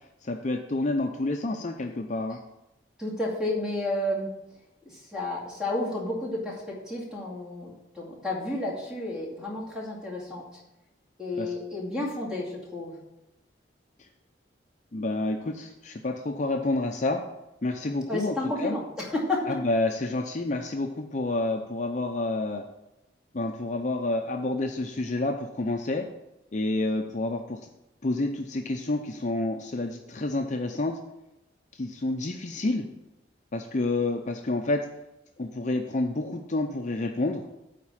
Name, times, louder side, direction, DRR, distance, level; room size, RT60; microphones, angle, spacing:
voice 1, 0.2-2.4 11.4-11.5 14.0-14.1 14.9-17.2 17.6-18.3 18.6-18.8 19.5-22.7 23.3-26.1 26.5-27.6 28.0-31.0 31.7-32.9 33.5-34.8 35.4-37.4, left 2 dB, 40° left, 3 dB, 0.6 m, -29 dB
voice 2, 3.0-4.3 4.9-10.4 11.2-13.0 18.1-19.5, left 1 dB, 5° right, -4 dB, 2.4 m, -31 dB
9.4 x 4.2 x 7.3 m, 0.91 s
head